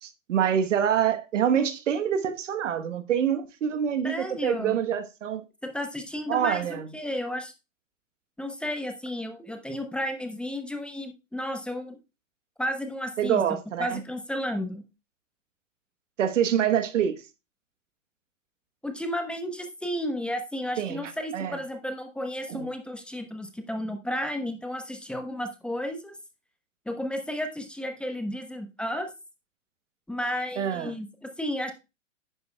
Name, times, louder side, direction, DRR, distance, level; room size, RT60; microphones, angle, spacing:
voice 1, 0.0-5.5 6.3-6.8 13.2-14.0 16.2-17.2 20.8-21.6 22.5-22.7 30.6-30.9, right 9 dB, 65° right, 1.2 m, -26 dB
voice 2, 4.0-4.8 5.6-7.5 8.4-12.0 12.6-14.8 18.8-26.2 26.9-29.1 30.1-31.7, equal, 5° left, 1.0 m, -33 dB
11.0 x 9.6 x 2.3 m
hypercardioid pair, 120°, 39 cm